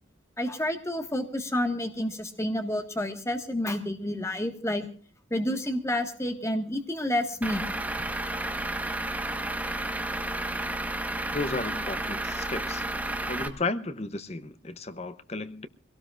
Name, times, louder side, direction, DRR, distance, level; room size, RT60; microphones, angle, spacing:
voice 1, 0.4-4.8 5.3-7.6, left 1 dB, 15° left, 1.7 m, -29 dB
Truck / Idling, 7.4-13.5, right 1 dB, 10° right, 1.3 m, -32 dB
voice 2, 11.3-12.9 13.3-15.7, left 3 dB, 35° left, 0.9 m, -33 dB
24.0 x 18.0 x 2.5 m
head